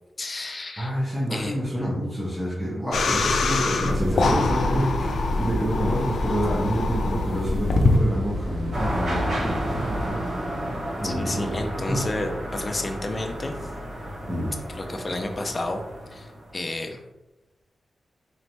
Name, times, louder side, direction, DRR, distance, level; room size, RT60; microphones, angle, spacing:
voice 1, 0.2-0.9 1.3-1.5 11.0-13.5 14.7-15.8 16.1-17.0, left 2 dB, 25° left, 4 dB, 0.4 m, -31 dB
voice 2, 0.8-10.3 11.0-12.0 14.3-14.6, equal, 15° right, -9 dB, 0.8 m, -28 dB
sound 1, 2.9-8.0, left 3 dB, 85° left, 0.4 m, -24 dB
sound 2, 3.9-10.1, equal, 80° right, 0.9 m, -32 dB
sound 3, 8.7-16.6, equal, 55° right, 1.1 m, -32 dB
4.3 x 3.1 x 2.6 m, 1.0 s
wide cardioid pair, 170°, 0 cm